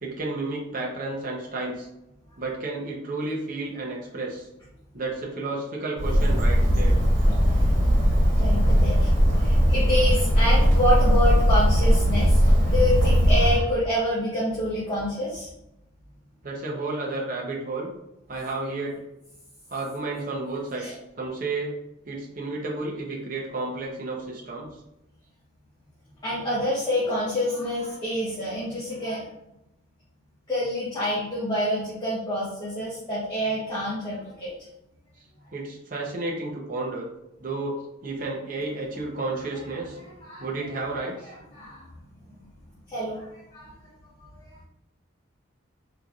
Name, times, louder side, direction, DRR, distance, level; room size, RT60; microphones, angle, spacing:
voice 1, 0.0-1.9 2.4-4.5 4.9-6.9 16.4-17.9 18.3-19.0 19.7-21.7 22.1-24.7 35.5-37.1 37.4-40.0 40.4-41.3, right 2 dB, 40° right, -2 dB, 0.7 m, -32 dB
Bird, 6.0-13.6, equal, 70° right, 1.5 m, -19 dB
voice 2, 8.4-12.4 12.7-15.5 20.8-20.9 26.2-29.3 30.5-34.5 40.2-40.5 41.5-41.8 42.3-42.4 42.9-43.7 44.2-44.7, left 1 dB, 20° left, -9 dB, 0.9 m, -27 dB
3.9 x 3.2 x 2.3 m, 0.88 s
head